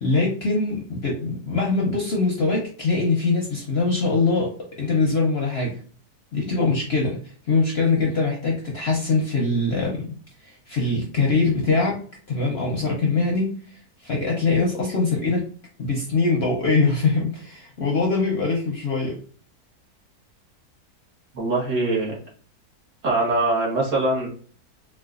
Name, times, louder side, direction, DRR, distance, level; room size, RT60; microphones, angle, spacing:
voice 1, 0.0-5.8 6.3-10.1 10.4-12.0 12.3-15.4 15.8-19.2, left 3 dB, 55° left, -2 dB, 0.7 m, -23 dB
voice 2, 21.3-22.2 23.0-24.3, right 2 dB, 55° right, -4 dB, 1.4 m, -22 dB
4.1 x 2.3 x 2.4 m, 0.43 s
omnidirectional pair, 1.7 m